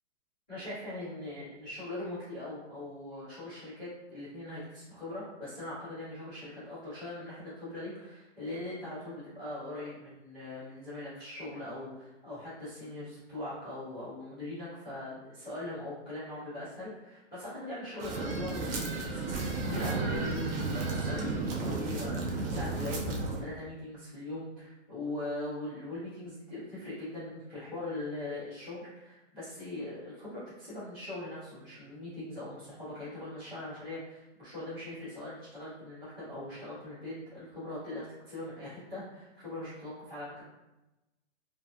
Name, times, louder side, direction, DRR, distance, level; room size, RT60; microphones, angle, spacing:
voice 1, 0.5-19.2 19.6-40.4, left 2 dB, 5° left, -22 dB, 0.3 m, -41 dB
sound 1, 18.0-23.4, right 3 dB, 55° right, 0.6 m, -33 dB
2.7 x 2.5 x 2.3 m, 1.0 s
hypercardioid pair, 160°, 36 cm